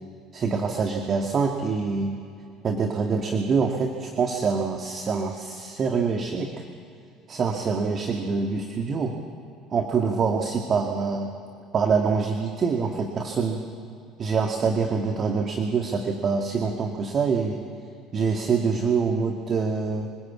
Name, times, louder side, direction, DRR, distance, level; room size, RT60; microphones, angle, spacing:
voice 1, 0.3-2.2 2.6-6.5 7.3-9.2 9.7-11.3 11.7-13.6 14.2-17.6 18.1-20.1, right 5 dB, 45° right, 3 dB, 2.0 m, -25 dB
25.0 x 16.0 x 8.5 m, 2.5 s
hypercardioid pair, 70°, 0 cm